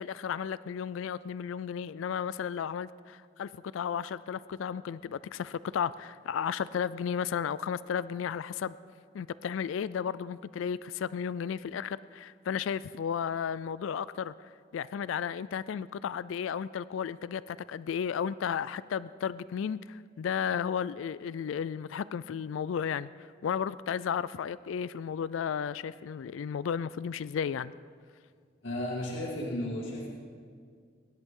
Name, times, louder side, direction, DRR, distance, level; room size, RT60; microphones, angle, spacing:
voice 1, 0.0-8.8 9.1-23.1 23.4-27.7, left 7 dB, 85° left, 18 dB, 0.3 m, -34 dB
voice 2, 28.6-30.1, left 1 dB, 70° left, -4 dB, 2.3 m, -34 dB
22.5 x 11.0 x 3.7 m, 2.1 s
head